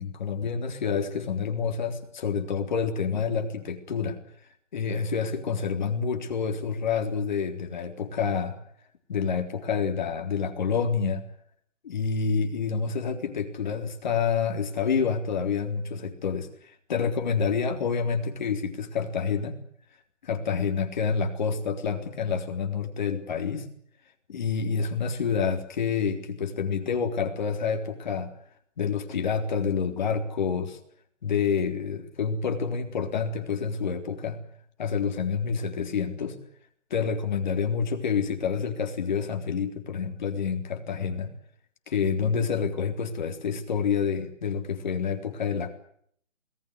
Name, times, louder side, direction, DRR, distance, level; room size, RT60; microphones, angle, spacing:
voice 1, 0.0-4.2 4.7-8.6 9.1-11.2 11.8-19.6 20.2-23.7 24.3-28.3 28.8-30.8 31.2-34.4 34.8-36.4 36.9-41.3 41.9-45.7, left 6 dB, 35° left, 5 dB, 3.8 m, -28 dB
28.0 x 19.5 x 8.2 m, 0.66 s
hypercardioid pair, 165°, 39 cm